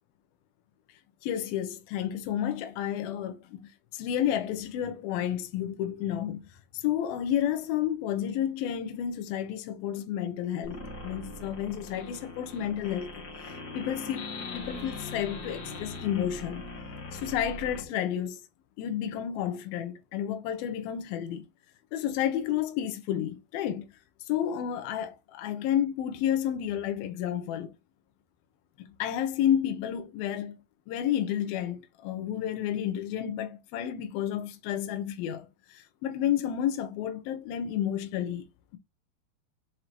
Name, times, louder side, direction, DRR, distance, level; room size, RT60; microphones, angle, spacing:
voice 1, 1.2-6.5 6.7-13.1 13.4-14.3 14.5-16.6 17.1-18.4 18.8-21.5 21.9-23.9 24.3-27.7 29.0-30.6 30.9-38.5, left 10 dB, 75° left, 2.8 m, -31 dB
sound 1, 10.6-17.8, left 2 dB, 40° left, 1.6 m, -40 dB
7.6 x 4.8 x 2.9 m
omnidirectional pair, 4.4 m